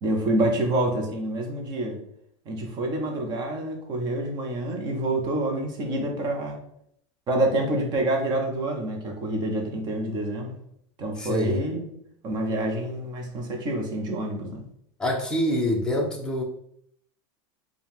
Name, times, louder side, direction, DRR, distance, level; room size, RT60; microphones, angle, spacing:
voice 1, 0.0-2.0 2.5-6.6 7.3-10.6 11.0-11.9 12.2-14.6, right 1 dB, 30° right, 2 dB, 0.8 m, -27 dB
voice 2, 11.2-11.6 15.0-16.4, left 1 dB, 5° left, -1 dB, 0.6 m, -25 dB
4.5 x 2.3 x 3.5 m, 0.70 s
supercardioid pair, 155°, 15 cm